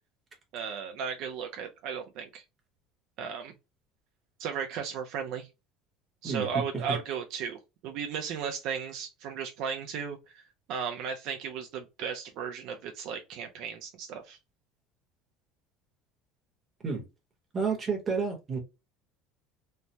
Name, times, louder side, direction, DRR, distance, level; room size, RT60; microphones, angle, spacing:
voice 1, 0.5-2.4 3.2-3.5 4.4-5.5 6.2-10.4 10.7-14.4, right 7 dB, 55° right, 0.5 m, -35 dB
voice 2, 6.2-6.6 6.9-7.0 16.8-17.0 17.5-18.6, right 5 dB, 20° right, 1.0 m, -30 dB
3.2 x 2.1 x 2.7 m
cardioid pair, 160°, 0 cm